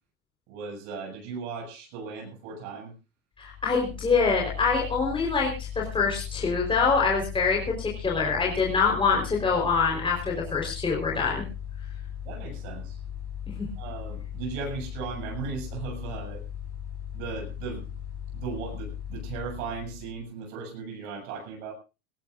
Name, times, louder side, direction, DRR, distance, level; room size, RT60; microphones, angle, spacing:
voice 1, 0.5-2.9 12.2-13.0 13.8-16.4 17.1-17.9 18.3-21.7, right 5 dB, 65° right, 1 dB, 7.3 m, -37 dB
Mechanical fan, 3.4-20.2, left 9 dB, 35° left, 7.1 m, -38 dB
voice 2, 3.4-11.4 13.6-13.7, left 5 dB, 15° left, -2 dB, 4.3 m, -25 dB
20.5 x 19.0 x 2.6 m, 0.31 s
supercardioid pair, 130°, 38 cm